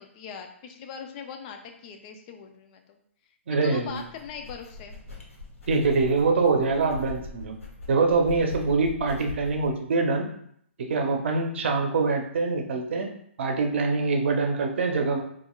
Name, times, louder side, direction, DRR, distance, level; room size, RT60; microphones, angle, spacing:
voice 1, 0.0-3.0 3.6-5.0 14.0-14.1, left 6 dB, 35° left, 4 dB, 0.4 m, -41 dB
voice 2, 3.5-4.0 5.7-7.6 7.9-10.3 10.8-13.1 13.4-15.2, right 4 dB, 60° right, 3 dB, 0.7 m, -24 dB
sound 1, 3.6-9.7, left 3 dB, 90° left, 1.1 m, -41 dB
4.2 x 2.4 x 2.3 m, 0.68 s
hypercardioid pair, 135°, 7 cm